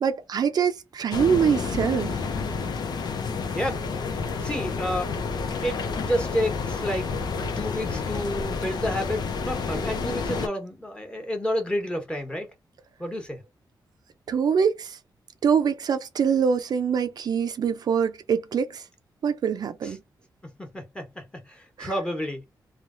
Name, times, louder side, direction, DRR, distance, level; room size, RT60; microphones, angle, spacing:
voice 1, 0.0-2.2 14.3-15.0 15.4-18.8 19.2-20.0 21.8-21.9, right 7 dB, 65° right, 0.5 m, -24 dB
sound 1, 1.1-10.5, left 4 dB, 70° left, 0.7 m, -30 dB
voice 2, 3.5-3.8 4.4-5.2 5.6-7.1 7.6-12.5 13.0-13.4 20.6-22.5, equal, 15° left, 1.2 m, -30 dB
3.1 x 2.3 x 2.5 m
cardioid pair, 100°, 7 cm